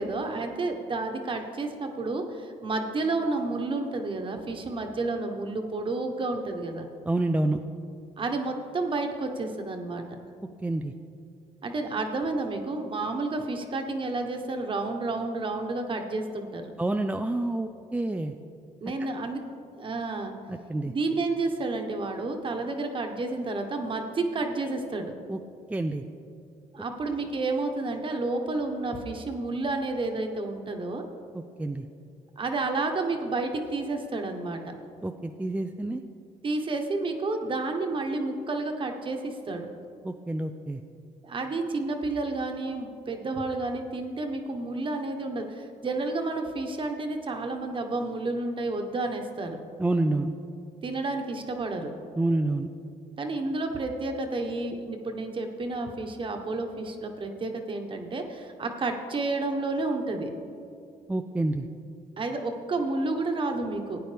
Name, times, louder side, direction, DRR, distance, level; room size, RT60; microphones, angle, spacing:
voice 1, 0.0-6.9 8.2-10.0 11.6-16.6 18.8-19.4 19.8-20.4 20.8-25.1 26.7-31.0 32.4-34.7 36.4-39.7 41.2-49.6 50.8-51.9 53.2-60.3 62.2-64.0, right 3 dB, 40° right, 4 dB, 1.4 m, -30 dB
voice 2, 7.0-7.6 10.6-10.9 16.8-18.3 19.0-19.1 20.5-20.9 25.3-25.4 25.7-26.0 31.3-31.8 35.0-36.0 40.0-40.8 49.8-50.3 52.2-52.7 61.1-61.7, right 2 dB, 10° right, 5 dB, 0.4 m, -28 dB
16.5 x 9.1 x 3.5 m, 2.4 s
cardioid pair, 85°, 14 cm